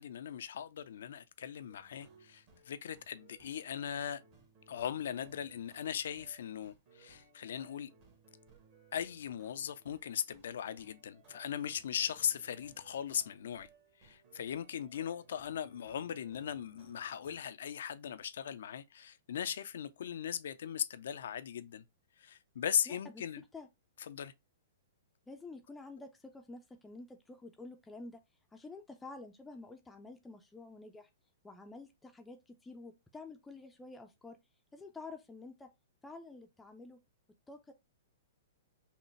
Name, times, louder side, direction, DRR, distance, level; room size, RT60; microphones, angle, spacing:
voice 1, 0.0-4.2 4.7-7.9 8.9-13.7 14.0-21.8 22.2-23.4 24.1-24.3, left 9 dB, 60° left, 0.4 m, -38 dB
sound 1, 1.7-17.5, right 4 dB, 40° right, 1.5 m, -63 dB
voice 2, 22.9-23.7 25.3-28.2 28.5-31.1 31.4-34.4 34.7-35.7 36.0-37.0 37.5-37.7, left 3 dB, 10° left, 0.5 m, -49 dB
5.7 x 2.2 x 3.1 m
figure-of-eight pair, 110°, 0 cm